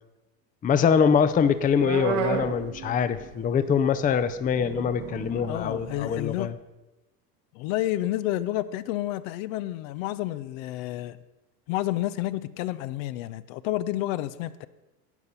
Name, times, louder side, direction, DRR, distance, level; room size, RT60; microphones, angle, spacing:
voice 1, 0.6-6.5, left 7 dB, 20° left, 12 dB, 0.6 m, -23 dB
sound 1, 1.2-3.7 4.0-6.4, right 7 dB, 70° right, 1.6 m, -33 dB
voice 2, 5.5-6.5 7.5-11.2 11.7-14.7, left 15 dB, 55° left, 14 dB, 0.7 m, -30 dB
12.0 x 8.1 x 5.7 m, 1.0 s
hypercardioid pair, 95°, 48 cm